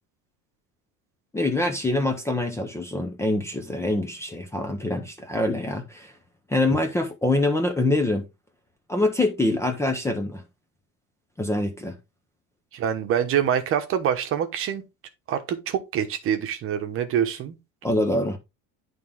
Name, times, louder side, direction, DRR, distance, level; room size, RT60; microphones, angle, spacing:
voice 1, 1.3-6.1 6.5-8.2 8.9-10.4 11.4-11.9 17.8-18.4, left 2 dB, 10° left, 0.7 m, -25 dB
voice 2, 12.7-14.8 15.3-17.5, right 9 dB, 40° right, 1.1 m, -25 dB
10.5 x 3.7 x 3.6 m
cardioid pair, 180°, 35 cm